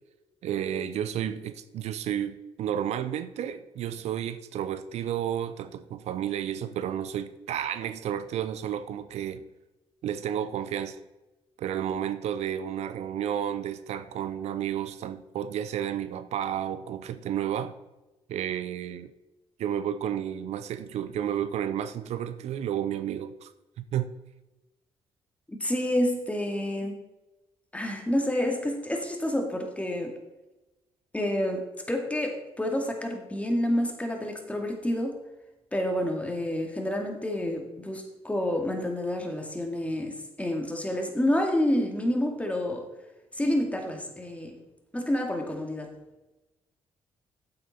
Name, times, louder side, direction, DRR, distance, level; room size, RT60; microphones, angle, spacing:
voice 1, 0.4-9.4 10.0-11.0 11.6-17.7 18.3-19.1 19.6-23.5 23.9-24.1, right 10 dB, 75° right, 12 dB, 0.6 m, -31 dB
voice 2, 25.5-27.0 27.7-30.1 31.1-35.2 35.7-42.8 43.4-44.6 44.9-45.9, left 1 dB, 10° left, 3 dB, 2.2 m, -29 dB
8.4 x 7.9 x 4.3 m, 1.0 s
cardioid pair, 65°, 11 cm